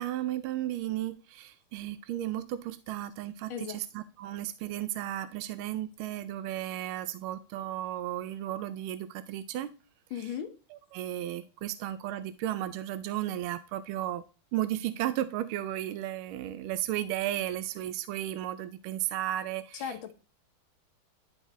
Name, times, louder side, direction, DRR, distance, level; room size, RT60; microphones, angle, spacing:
voice 1, 0.0-9.7 10.9-14.2 14.5-20.1, right 13 dB, 80° right, 1.4 m, -34 dB
voice 2, 10.1-10.6 19.7-20.1, left 8 dB, 70° left, 1.7 m, -36 dB
11.5 x 3.9 x 3.1 m
omnidirectional pair, 2.3 m